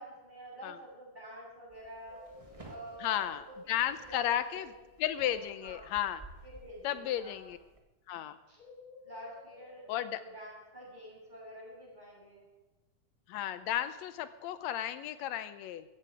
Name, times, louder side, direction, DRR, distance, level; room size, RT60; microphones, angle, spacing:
voice 1, 0.0-2.2 2.6-4.6 5.2-5.9 6.4-7.5 8.5-8.6 9.0-12.4, right 1 dB, 15° right, -5 dB, 7.3 m, -48 dB
sound 1, 1.7-7.8, right 2 dB, 40° right, 0.4 m, -56 dB
sound 2, 2.1-4.5 8.6-10.2, left 4 dB, 45° left, 2.3 m, -56 dB
voice 2, 3.0-4.7 5.0-6.2 6.8-7.6 8.1-8.4 9.9-10.2 13.3-15.9, left 11 dB, 75° left, 13 dB, 1.8 m, -34 dB
15.5 x 14.5 x 5.0 m, 1.1 s
omnidirectional pair, 3.6 m